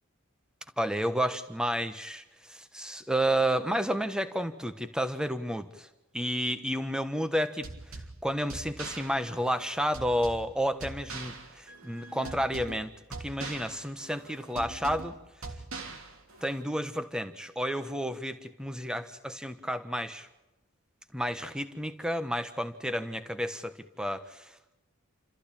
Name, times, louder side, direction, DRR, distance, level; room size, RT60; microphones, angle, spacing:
voice 1, 0.8-5.9 6.1-12.9 13.2-15.2 16.4-20.3 21.1-24.5, equal, 5° right, 10 dB, 1.3 m, -31 dB
sound 1, 7.6-16.6, right 3 dB, 65° right, 3.3 m, -43 dB
29.0 x 14.5 x 8.7 m, 0.97 s
head